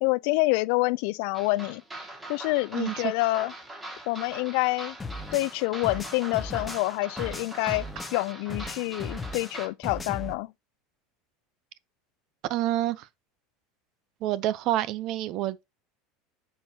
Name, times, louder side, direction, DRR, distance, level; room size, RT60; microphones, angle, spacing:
voice 1, 0.0-1.8 2.3-3.5 4.1-5.0 5.3-10.5, left 22 dB, 60° left, 0.3 m, -27 dB
sound 1, 1.3-9.7, right 2 dB, 15° right, 1.9 m, -42 dB
voice 2, 2.7-3.1 12.5-13.1 14.2-15.6, right 14 dB, 45° right, 0.5 m, -28 dB
sound 2, 5.0-8.2 8.5-10.3, left 3 dB, 15° left, 0.6 m, -37 dB
9.0 x 5.6 x 2.8 m
supercardioid pair, 160°, 0 cm